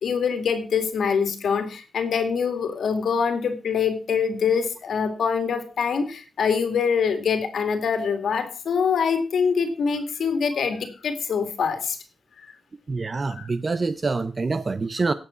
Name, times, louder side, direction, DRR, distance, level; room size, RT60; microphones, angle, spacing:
voice 1, 0.0-12.0 13.3-13.5, left 6 dB, 70° left, 2.2 m, -24 dB
voice 2, 12.9-15.1, right 3 dB, 30° right, 0.5 m, -26 dB
18.0 x 7.4 x 4.3 m
wide cardioid pair, 145°, 0 cm